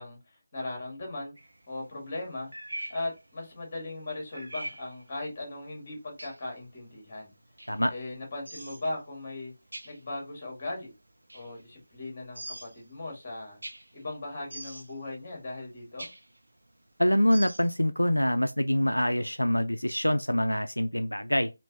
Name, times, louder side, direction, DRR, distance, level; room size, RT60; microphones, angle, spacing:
voice 1, 0.0-1.3 1.7-2.5 2.9-7.3 7.9-9.5 9.8-10.9 11.3-13.6 13.9-16.1, left 2 dB, 25° left, 1.6 m, -38 dB
sound 1, 1.4-17.7, right 1 dB, 65° right, 0.6 m, -44 dB
voice 2, 17.0-21.5, equal, 80° left, 0.3 m, -25 dB
3.2 x 2.9 x 2.5 m
figure-of-eight pair, 160°, 0 cm